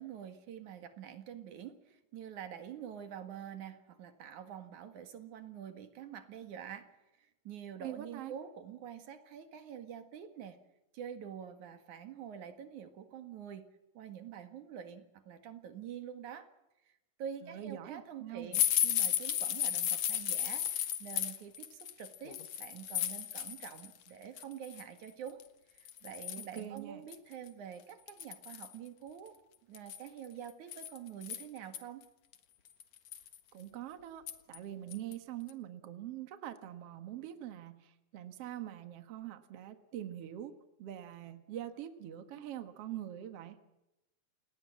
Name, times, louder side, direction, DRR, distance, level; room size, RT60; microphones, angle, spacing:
voice 1, 0.0-6.9 7.2-10.6 10.9-13.6 13.9-16.5 16.9-25.4 25.7-29.4 29.7-32.0, right 8 dB, 80° right, 8 dB, 3.3 m, -47 dB
voice 2, 7.8-8.3 17.4-18.6 26.4-27.1 33.5-34.2 34.5-43.6, right 12 dB, 55° right, 9 dB, 2.4 m, -44 dB
sound 1, 18.5-23.9 24.2-24.8 25.4-25.5 25.9-26.6 27.1-27.2 27.5-27.6 28.1-28.7 29.7-31.8 32.3-32.4 32.8-33.4 34.3-34.6 34.9-35.1 35.5-35.6, left 10 dB, 65° left, 2.6 m, -34 dB
29.0 x 18.5 x 7.5 m, 0.93 s
omnidirectional pair, 3.4 m